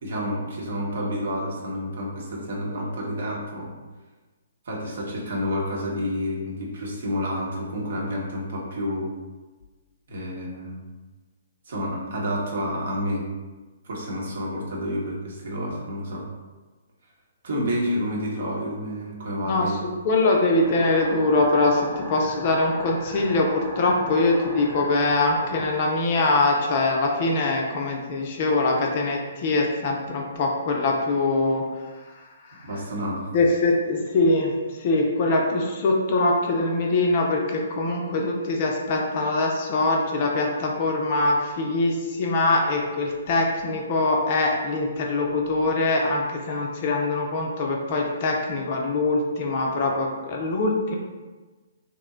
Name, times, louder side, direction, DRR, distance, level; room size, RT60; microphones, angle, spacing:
voice 1, 0.0-3.7 4.6-9.1 10.1-10.8 11.7-13.2 13.8-16.3 17.4-19.8 32.6-33.3, equal, 55° right, -3 dB, 0.9 m, -29 dB
voice 2, 19.4-31.6 33.3-34.5 34.8-51.0, left 2 dB, 40° left, 0 dB, 0.5 m, -23 dB
sound 1, 20.6-25.6, right 1 dB, 15° right, 0.4 m, -39 dB
3.0 x 2.1 x 3.6 m, 1.3 s
figure-of-eight pair, 125°, 0 cm